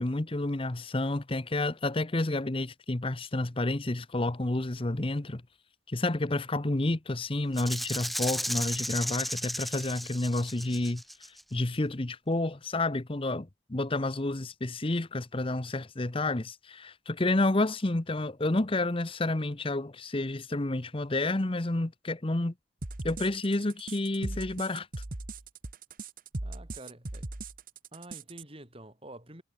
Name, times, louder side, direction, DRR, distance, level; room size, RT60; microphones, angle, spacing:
voice 1, 0.0-5.4 5.9-11.0 11.5-22.5 23.0-24.9, left 2 dB, 30° left, 0.9 m, -30 dB
Rattle (instrument), 7.6-11.4, equal, ahead, 1.3 m, -34 dB
sound 1, 22.8-28.4, right 2 dB, 45° right, 1.4 m, -39 dB
voice 2, 26.4-27.3 27.9-29.4, right 1 dB, 30° right, 7.7 m, -48 dB
head